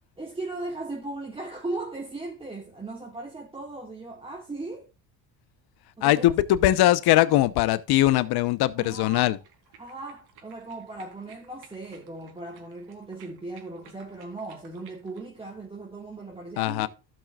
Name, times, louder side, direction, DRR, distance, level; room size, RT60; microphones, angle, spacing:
voice 1, 0.2-4.9 6.0-6.3 8.8-9.3 9.8-16.9, right 2 dB, 15° right, 1.7 m, -37 dB
voice 2, 6.0-9.4 16.6-16.9, left 15 dB, 65° left, 0.9 m, -21 dB
sound 1, 9.2-15.3, right 6 dB, 65° right, 2.8 m, -55 dB
15.5 x 6.0 x 2.4 m
cardioid pair, 110°, 41 cm